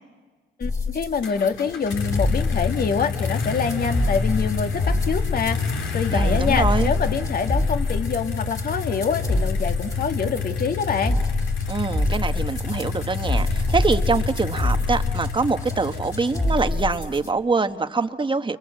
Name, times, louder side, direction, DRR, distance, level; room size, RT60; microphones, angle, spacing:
voice 1, 0.6-11.2, left 6 dB, 50° left, 7 dB, 1.9 m, -26 dB
sound 1, 0.6-17.3, left 2 dB, 20° left, 3.1 m, -26 dB
sound 2, 1.2-17.2, left 5 dB, 75° left, 3.5 m, -29 dB
voice 2, 6.1-6.9 11.7-18.6, right 4 dB, 25° right, 9 dB, 1.3 m, -24 dB
30.0 x 25.5 x 7.7 m, 1.4 s
cardioid pair, 90°, 20 cm